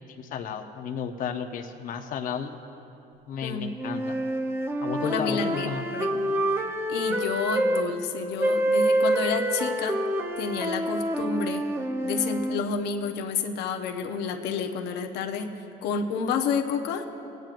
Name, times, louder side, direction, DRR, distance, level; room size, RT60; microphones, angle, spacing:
voice 1, 0.0-2.6 3.3-4.2 4.8-5.9, left 7 dB, 55° left, 5 dB, 0.6 m, -33 dB
sound 1, 3.8-7.9 8.4-12.6, right 1 dB, 15° right, 0.7 m, -27 dB
voice 2, 5.0-6.4 6.9-10.0 10.4-11.6 12.0-15.5 15.8-17.0, left 6 dB, 85° left, 4 dB, 0.8 m, -30 dB
24.0 x 9.1 x 2.5 m, 2.8 s
cardioid pair, 110°, 17 cm